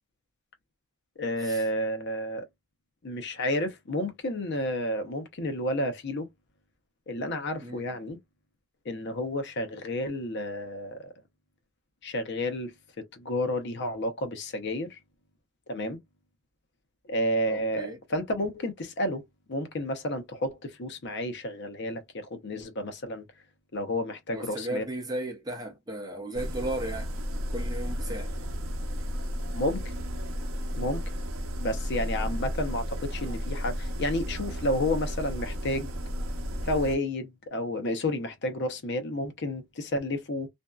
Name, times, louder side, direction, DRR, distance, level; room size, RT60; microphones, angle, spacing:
voice 1, 1.2-2.5 3.0-6.3 7.1-8.2 8.9-11.1 12.0-15.0 15.7-16.0 17.1-19.2 19.5-23.2 23.7-24.8 29.5-29.9 30.8-31.0 31.6-35.9 36.6-40.5, left 1 dB, 55° left, 0.6 m, -31 dB
voice 2, 17.5-18.0 24.3-27.1 27.5-28.3, right 1 dB, 20° right, 0.8 m, -35 dB
sound 1, 26.3-37.0, equal, 70° right, 0.6 m, -33 dB
2.6 x 2.2 x 2.2 m
head